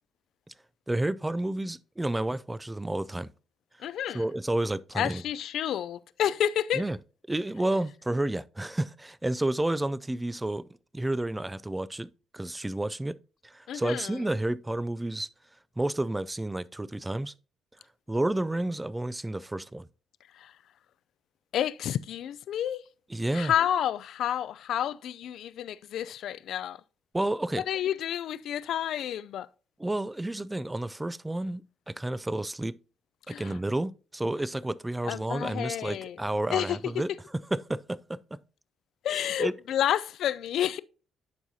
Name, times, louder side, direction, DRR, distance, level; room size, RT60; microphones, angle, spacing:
voice 1, 0.9-3.3 4.1-5.2 6.7-7.0 7.3-10.6 10.9-13.2 13.4-15.3 15.8-17.3 18.1-19.9 23.1-23.5 27.1-27.6 29.8-32.7 33.3-37.1 37.5-38.4 39.1-39.5, right 1 dB, 10° right, 0.3 m, -30 dB
voice 2, 3.8-4.2 4.9-6.8 13.7-14.2 20.3-20.5 21.5-22.9 23.3-26.8 27.7-29.5 33.3-33.6 35.0-36.2 36.5-36.9 39.0-40.8, left 10 dB, 75° left, 0.3 m, -30 dB
11.0 x 4.7 x 2.7 m
cardioid pair, 90°, 0 cm